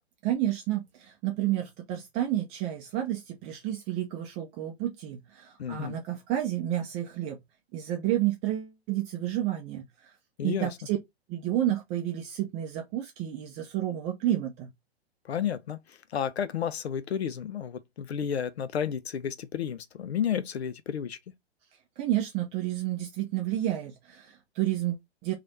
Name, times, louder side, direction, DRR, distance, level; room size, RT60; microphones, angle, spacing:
voice 1, 0.2-7.4 7.7-9.8 10.4-11.0 11.3-14.7 22.0-25.3, right 13 dB, 20° right, 0.5 m, -30 dB
voice 2, 5.6-6.0 10.4-10.7 15.2-15.8 16.1-21.2, left 8 dB, 70° left, 0.6 m, -31 dB
3.2 x 2.4 x 4.0 m
figure-of-eight pair, 115°, 33 cm